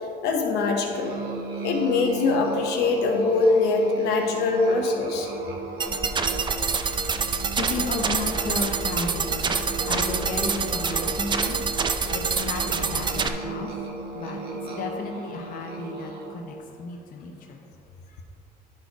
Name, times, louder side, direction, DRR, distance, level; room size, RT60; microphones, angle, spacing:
voice 1, 0.2-1.1 1.6-5.3, left 3 dB, 80° left, 2 dB, 1.1 m, -23 dB
Musical instrument, 0.9-16.5, right 3 dB, 70° right, 1.7 m, -36 dB
voice 2, 5.3-17.7 18.1-18.2, left 3 dB, 55° left, 1 dB, 0.8 m, -35 dB
sound 1, 5.8-13.3, right 5 dB, 25° right, 0.5 m, -26 dB
11.0 x 4.0 x 4.7 m, 2.7 s
cardioid pair, 110°, 17 cm